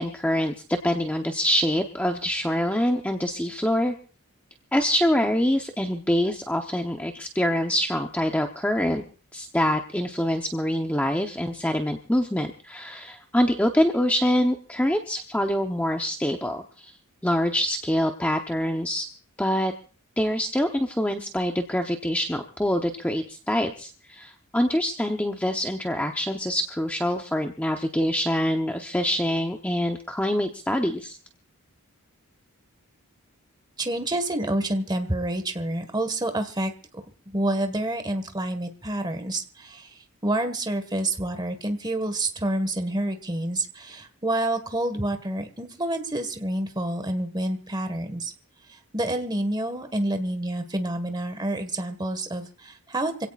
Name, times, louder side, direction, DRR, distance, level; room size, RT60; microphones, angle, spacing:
voice 1, 0.0-3.9 4.7-9.0 9.3-16.9 17.2-19.1 19.4-19.7 20.2-31.2, equal, 5° left, 3 dB, 0.9 m, -25 dB
voice 2, 33.8-36.7 37.3-48.3 48.7-53.3, right 1 dB, 20° right, 7 dB, 1.7 m, -28 dB
26.5 x 17.0 x 2.5 m, 0.39 s
head